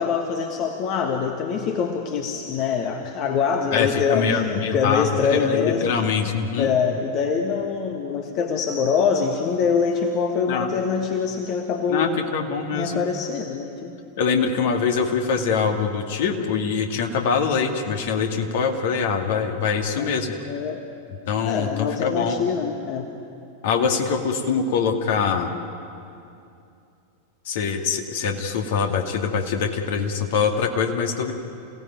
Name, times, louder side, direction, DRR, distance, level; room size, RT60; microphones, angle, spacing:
voice 1, 0.0-6.0 6.6-12.2 12.7-13.9 20.0-20.1 20.5-20.8 21.4-23.1, left 6 dB, 40° left, 3 dB, 1.7 m, -24 dB
voice 2, 3.7-6.7 10.5-10.7 11.9-13.0 14.2-20.4 21.3-22.4 23.6-25.5 27.5-31.3, left 6 dB, 55° left, 3 dB, 2.4 m, -24 dB
28.5 x 17.5 x 9.4 m, 2.6 s
figure-of-eight pair, 90°, 0 cm